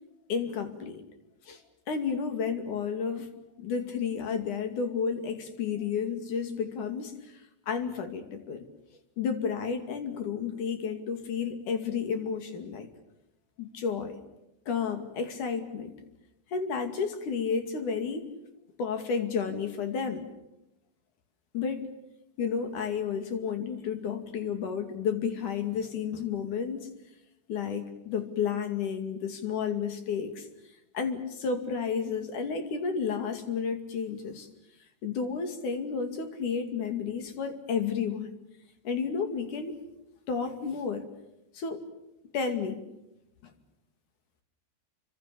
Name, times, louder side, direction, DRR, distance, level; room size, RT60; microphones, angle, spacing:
voice 1, 0.3-1.0 1.5-1.6 1.9-3.3 3.6-7.3 7.7-8.6 9.2-12.9 13.6-14.2 14.7-15.9 16.5-18.3 18.8-20.3 21.5-21.8 22.4-26.9 27.5-30.5 30.9-34.5 35.0-38.3 38.8-39.8 40.3-41.0 41.5-41.8 42.3-42.8 43.4-43.5, left 6 dB, 50° left, 7 dB, 3.6 m, -31 dB
28.5 x 25.0 x 6.9 m, 0.91 s
omnidirectional pair, 4.9 m